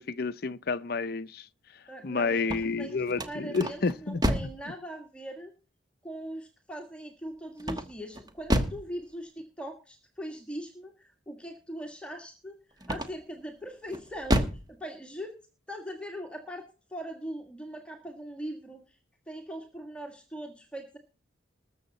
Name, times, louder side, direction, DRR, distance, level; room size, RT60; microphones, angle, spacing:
voice 1, 0.0-1.5 2.0-4.2, left 4 dB, 50° left, 0.6 m, -30 dB
voice 2, 1.9-5.5 6.0-15.4 15.7-19.0 19.3-21.0, equal, 5° left, 1.7 m, -41 dB
sound 1, 2.3-4.6 7.6-8.9 12.8-13.4 13.9-14.7, equal, 20° right, 1.3 m, -29 dB
20.5 x 7.1 x 4.0 m
head